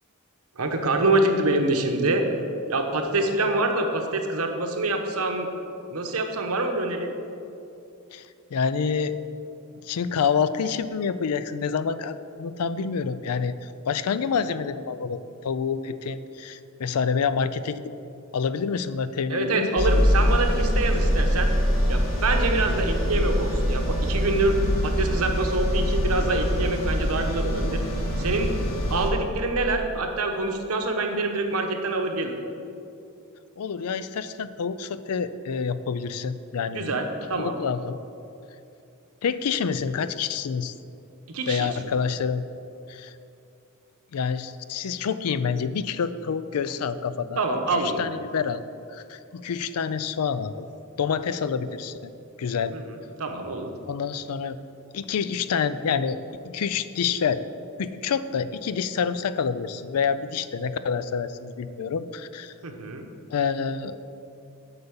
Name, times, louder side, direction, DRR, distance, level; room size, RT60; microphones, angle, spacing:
voice 1, 0.6-2.2 2.7-5.5 5.9-7.1 19.3-21.5 21.9-24.5 24.8-27.8 28.2-28.5 28.9-32.3 36.7-37.6 41.3-41.7 47.4-48.0 52.7-52.8 53.2-53.7 62.6-63.1, right 2 dB, 75° right, 4 dB, 1.0 m, -25 dB
voice 2, 8.1-9.2 9.8-17.8 18.3-19.9 33.6-36.9 37.3-38.0 39.2-40.7 41.5-42.4 42.9-43.1 44.1-47.4 47.7-50.7 51.0-52.1 52.4-52.8 53.9-54.6 54.9-57.5 57.8-62.5 63.3-64.0, left 6 dB, 85° left, 14 dB, 0.4 m, -27 dB
sound 1, 19.8-29.1, equal, 65° left, 1.4 m, -24 dB
8.0 x 5.4 x 7.1 m, 2.7 s
head